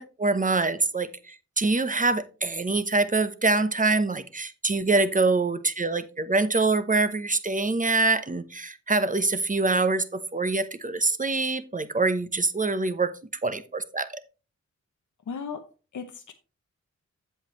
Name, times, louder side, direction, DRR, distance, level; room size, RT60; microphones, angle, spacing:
voice 1, 0.0-13.1 13.4-14.1, right 3 dB, 25° right, 0.9 m, -25 dB
voice 2, 15.3-16.3, left 5 dB, 85° left, 0.8 m, -37 dB
8.0 x 7.9 x 3.1 m
cardioid pair, 55°, 30 cm